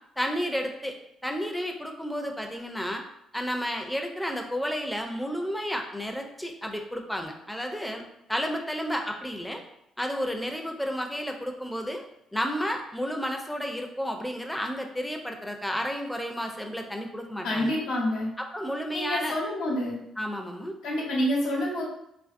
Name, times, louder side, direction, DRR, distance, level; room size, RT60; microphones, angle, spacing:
voice 1, 0.2-0.9 1.2-3.0 3.3-8.0 8.3-9.6 10.0-12.0 12.3-17.8 18.4-19.4 20.2-20.7, equal, 5° left, 3 dB, 0.4 m, -31 dB
voice 2, 17.4-18.3 18.9-20.0 20.8-21.8, left 1 dB, 90° left, -4 dB, 0.9 m, -27 dB
2.8 x 2.5 x 2.4 m, 0.80 s
cardioid pair, 90°, 0 cm